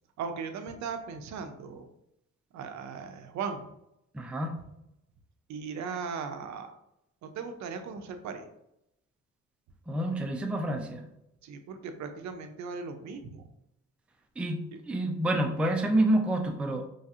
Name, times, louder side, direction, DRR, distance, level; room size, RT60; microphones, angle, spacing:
voice 1, 0.2-1.9 2.5-3.7 5.5-6.7 7.2-8.5 11.4-13.5, right 5 dB, 70° right, 7 dB, 0.5 m, -38 dB
voice 2, 4.1-4.5 9.9-11.0 14.4-16.8, right 1 dB, 5° right, 4 dB, 0.3 m, -28 dB
3.1 x 2.6 x 2.4 m, 0.83 s
cardioid pair, 90°, 30 cm